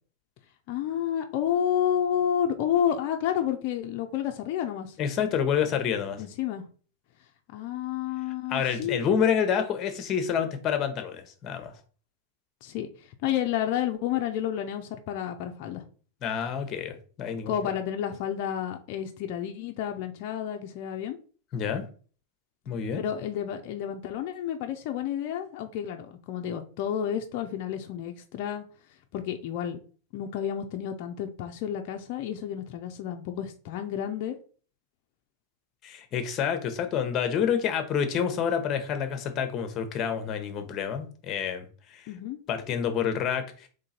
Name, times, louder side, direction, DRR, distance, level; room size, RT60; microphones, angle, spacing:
voice 1, 0.7-5.0 6.2-6.6 7.5-9.1 12.6-15.8 17.5-21.2 23.0-28.6 29.1-29.8 30.1-34.4 42.1-42.4, left 9 dB, 55° left, 4 dB, 0.5 m, -30 dB
voice 2, 5.0-6.2 8.5-11.7 16.2-17.5 21.5-21.8 22.7-23.0 35.8-42.1 42.5-43.7, left 7 dB, 40° left, 8 dB, 1.0 m, -28 dB
3.7 x 3.2 x 4.2 m, 0.41 s
hypercardioid pair, 110°, 0 cm